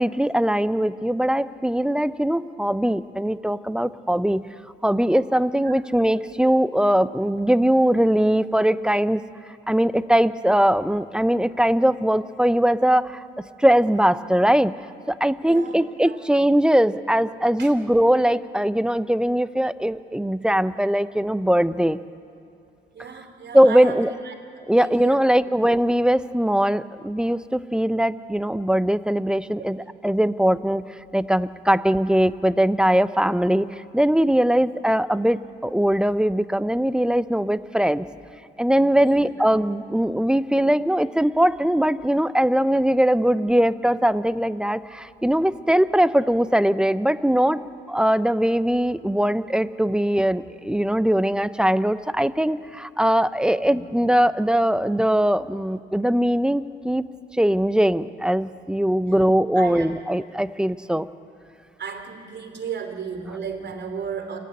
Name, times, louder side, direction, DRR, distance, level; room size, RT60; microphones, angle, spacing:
voice 1, 0.0-4.5 4.8-9.2 9.7-13.2 13.6-14.7 15.1-22.0 23.5-24.1 24.7-38.1 38.6-47.6 47.9-57.0 57.4-61.1, equal, 5° right, 14 dB, 0.5 m, -21 dB
voice 2, 15.4-15.8 16.0-16.2 17.6-17.7 22.9-24.3 24.8-25.3 25.7-25.8 29.6-29.7 34.5-34.6 39.0-39.2 53.6-53.9 58.9-59.9 61.8-64.4, right 6 dB, 60° right, 4 dB, 2.8 m, -35 dB
28.0 x 9.4 x 9.8 m, 2.6 s
cardioid pair, 90°, 20 cm